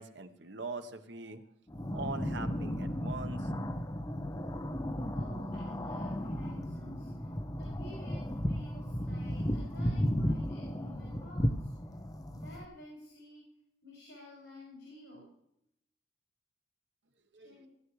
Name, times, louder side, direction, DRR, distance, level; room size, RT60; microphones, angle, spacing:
voice 1, 0.0-1.4 1.9-3.4 17.3-17.6, right 3 dB, 90° right, 7 dB, 1.2 m, -42 dB
sound 1, 1.7-12.6, equal, 20° left, 0.7 m, -34 dB
voice 2, 5.1-11.7 12.3-13.4 13.8-15.3 17.4-17.7, left 1 dB, 75° left, -4 dB, 5.7 m, -52 dB
17.0 x 11.0 x 3.2 m, 0.76 s
head